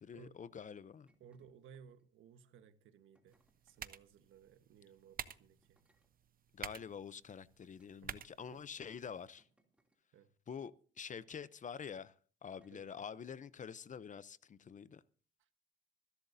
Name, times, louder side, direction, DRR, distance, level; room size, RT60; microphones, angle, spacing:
voice 1, 0.0-1.1 6.5-9.5 10.5-12.1 12.4-15.0, left 7 dB, 40° left, 0.7 m, -47 dB
sound 1, 1.1-1.5 1.7-2.2 3.1-3.8 4.9-5.1 5.6-6.1 6.8-6.9 7.6-8.5 9.4-10.0 11.2-11.5 12.5-12.9 14.0-14.2, right 1 dB, 5° right, 2.8 m, -77 dB
voice 2, 1.2-5.8 8.0-8.6 10.1-10.3 12.7-13.0 15.4-15.5, right 7 dB, 80° right, 1.3 m, -60 dB
sound 2, 3.3-9.3, right 8 dB, 45° right, 0.8 m, -51 dB
24.5 x 11.5 x 2.7 m
cardioid pair, 90°, 20 cm